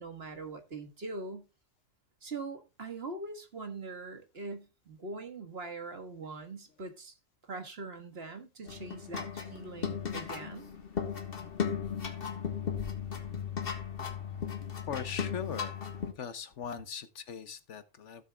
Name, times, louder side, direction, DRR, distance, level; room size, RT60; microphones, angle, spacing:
voice 1, 0.0-1.4 2.2-7.2 7.4-10.7, right 3 dB, 55° right, 1.8 m, -42 dB
sound 1, 8.7-16.1, left 7 dB, 50° left, 1.6 m, -36 dB
voice 2, 14.9-15.8 16.2-18.2, left 7 dB, 70° left, 1.2 m, -40 dB
16.0 x 6.9 x 2.3 m
omnidirectional pair, 1.3 m